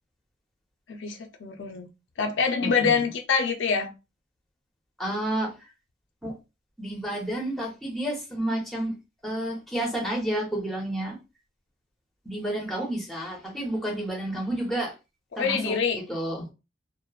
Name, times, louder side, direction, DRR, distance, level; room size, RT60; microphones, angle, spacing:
voice 1, 0.9-1.9 2.2-3.9 15.3-16.0, left 5 dB, 70° left, 0.5 m, -25 dB
voice 2, 2.6-3.0 5.0-5.5 6.2-6.3 6.8-8.9 9.2-11.2 12.3-14.9 15.3-15.7 16.1-16.5, right 1 dB, ahead, 0.8 m, -30 dB
2.9 x 2.0 x 2.3 m
head